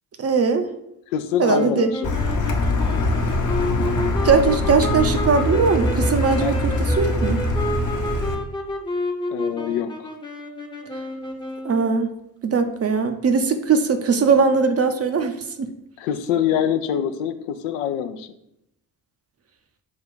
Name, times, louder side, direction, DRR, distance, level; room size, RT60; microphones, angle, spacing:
voice 1, 0.2-0.7 1.4-1.9 4.2-7.4 11.6-12.1 12.4-15.7, right 5 dB, 30° right, 7 dB, 0.5 m, -20 dB
voice 2, 1.1-2.1 6.4-6.5 9.3-10.1 16.0-18.3, left 9 dB, 70° left, 8 dB, 0.6 m, -24 dB
sound 1, 1.4-11.9, left 1 dB, 10° left, 0.7 m, -30 dB
Car, 2.0-8.3, left 2 dB, 40° left, 0.9 m, -23 dB
5.3 x 2.3 x 3.8 m, 0.80 s
hypercardioid pair, 45°, 48 cm